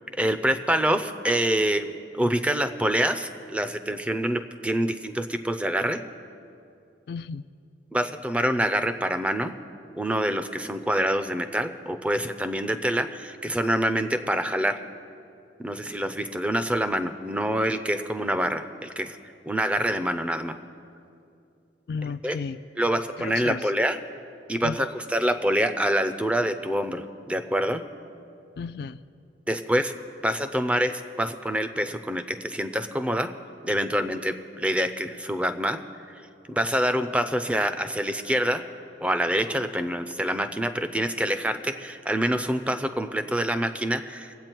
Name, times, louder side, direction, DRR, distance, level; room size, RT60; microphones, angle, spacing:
voice 1, 0.1-6.0 7.9-9.5 10.0-14.8 15.6-19.2 19.5-20.5 22.2-22.4 22.8-24.0 24.5-27.8 29.5-29.9 30.2-33.3 33.6-35.8 36.5-38.6 39.0-44.3, right 1 dB, 5° right, 9 dB, 0.5 m, -26 dB
voice 2, 7.1-7.4 21.9-22.6 23.2-23.6 24.6-24.8 28.6-29.0, left 5 dB, 60° left, 13 dB, 0.3 m, -33 dB
23.5 x 8.4 x 4.5 m, 2.6 s
head